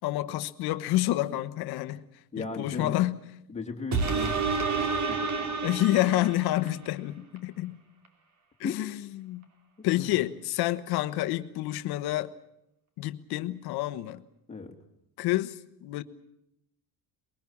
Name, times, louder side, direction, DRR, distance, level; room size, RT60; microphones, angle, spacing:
voice 1, 0.0-2.0 2.4-3.2 5.6-7.8 8.6-9.4 9.8-12.3 13.0-14.2 15.2-16.0, left 16 dB, 60° left, 1.3 m, -28 dB
voice 2, 2.3-3.0 3.5-5.6 8.6-8.7 9.9-10.2 14.5-14.7, left 4 dB, 15° left, 2.8 m, -37 dB
sound 1, 3.9-6.8 7.4-7.5, right 4 dB, 40° right, 3.0 m, -29 dB
23.5 x 21.5 x 7.3 m
cardioid pair, 165°, 42 cm